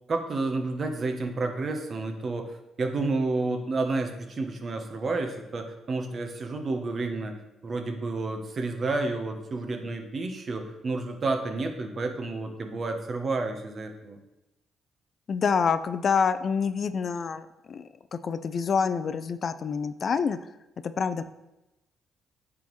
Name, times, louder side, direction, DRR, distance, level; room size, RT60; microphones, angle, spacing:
voice 1, 0.1-7.3 7.6-14.2, right 3 dB, 45° right, 5 dB, 0.9 m, -30 dB
voice 2, 15.3-20.4 20.8-21.2, left 6 dB, 50° left, 12 dB, 0.3 m, -27 dB
9.0 x 3.6 x 3.1 m, 0.95 s
cardioid pair, 90°, 0 cm